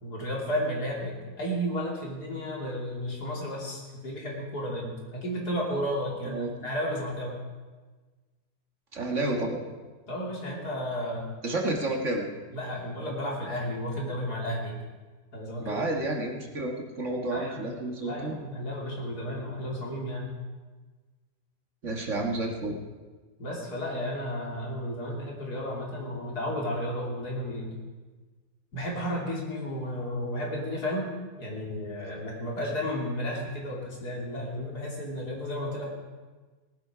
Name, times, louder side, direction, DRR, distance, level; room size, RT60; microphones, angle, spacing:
voice 1, 0.0-7.3 10.1-11.3 12.5-14.8 15.3-15.8 17.3-17.7 18.0-20.3 23.4-27.7 28.7-31.1 31.4-35.9, equal, 70° left, -3 dB, 3.6 m, -33 dB
voice 2, 8.9-9.6 11.4-12.3 15.6-18.4 21.8-22.8, right 2 dB, 45° right, 1 dB, 1.9 m, -30 dB
18.5 x 12.0 x 4.9 m, 1.3 s
omnidirectional pair, 1.8 m